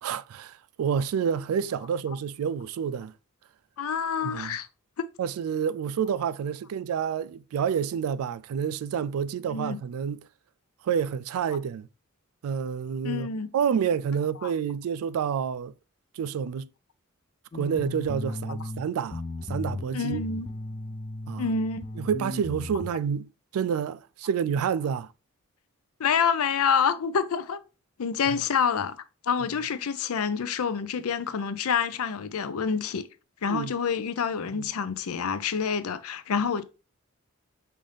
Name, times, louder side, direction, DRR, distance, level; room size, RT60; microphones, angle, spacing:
voice 1, 0.0-3.1 4.2-4.6 5.2-10.2 10.8-11.9 12.4-13.3 13.5-15.7 16.1-16.7 17.5-19.2 19.5-20.3 21.3-21.4 22.0-25.1 28.3-28.4 33.5-33.7 34.5-34.7, right 7 dB, 80° right, 0.3 m, -29 dB
voice 2, 3.8-4.7 5.0-5.1 9.5-9.8 13.0-13.5 14.4-14.5 19.9-20.5 21.4-21.8 26.0-27.6 28.0-29.0 29.2-33.1 33.4-36.6, left 6 dB, 80° left, 0.5 m, -27 dB
sound 1, 17.5-18.8 19.1-22.9, left 2 dB, 25° left, 0.3 m, -36 dB
5.4 x 2.6 x 3.2 m
head